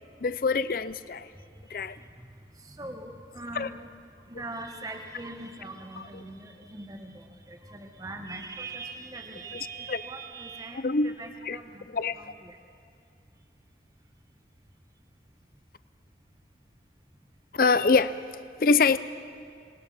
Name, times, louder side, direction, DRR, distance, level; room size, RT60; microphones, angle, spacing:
voice 1, 0.2-1.3 1.7-2.0 3.5-3.7 6.0-6.1 9.9-10.0 10.7-11.2 11.4-11.6 11.9-12.2 17.5-18.2 18.6-19.0, left 4 dB, 50° left, 14 dB, 0.5 m, -24 dB
voice 2, 2.7-3.9 4.3-11.9 12.1-12.6, right 2 dB, 20° right, 3 dB, 1.3 m, -41 dB
26.5 x 20.0 x 5.6 m, 2.4 s
head